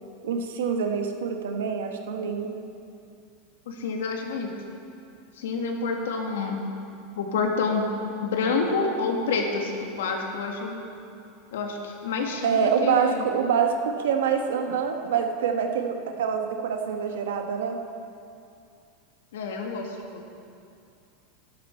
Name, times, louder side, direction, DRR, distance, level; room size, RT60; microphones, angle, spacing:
voice 1, 0.2-2.5 12.4-17.8, right 7 dB, 90° right, 5 dB, 1.1 m, -26 dB
voice 2, 3.7-4.5 5.4-6.6 7.2-7.9 8.2-10.8 11.5-13.2 19.3-20.4, left 4 dB, 90° left, 2 dB, 1.7 m, -28 dB
11.5 x 11.5 x 4.4 m, 2.6 s
supercardioid pair, 135°, 0 cm